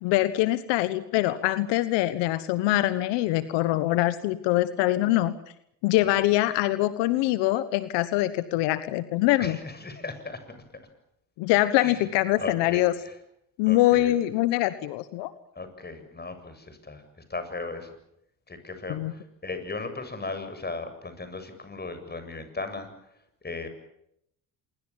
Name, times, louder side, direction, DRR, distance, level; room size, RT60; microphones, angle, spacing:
voice 1, 0.0-5.3 5.8-9.6 11.4-12.9 13.6-15.3 18.9-19.1, left 16 dB, 80° left, 13 dB, 1.4 m, -24 dB
voice 2, 9.4-10.4 11.8-12.0 12.4-13.1 13.7-14.1 15.6-17.0 17.3-17.9 18.5-22.9 23.4-23.7, left 3 dB, 25° left, 9 dB, 7.5 m, -37 dB
27.0 x 23.5 x 7.3 m, 0.76 s
supercardioid pair, 75°, 42 cm